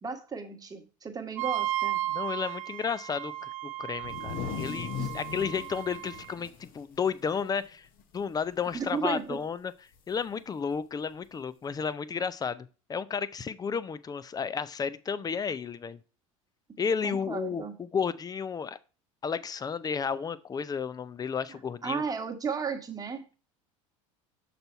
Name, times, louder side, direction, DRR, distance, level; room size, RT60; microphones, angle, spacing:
voice 1, 0.0-2.0 5.0-5.1 8.7-9.4 17.0-17.7 21.8-23.2, right 5 dB, 20° right, 1.3 m, -34 dB
Wind instrument woodwind instrument, 1.4-6.3, right 15 dB, 85° right, 0.5 m, -35 dB
voice 2, 2.1-7.9 8.1-9.7 10.1-16.0 16.8-18.8 19.2-22.0, left 6 dB, 20° left, 0.5 m, -32 dB
sound 1, 3.9-7.7 8.0-8.1 8.5-9.0 10.1-10.2 11.2-11.3, left 8 dB, 55° left, 0.9 m, -39 dB
6.7 x 4.2 x 4.4 m
hypercardioid pair, 80°, 17 cm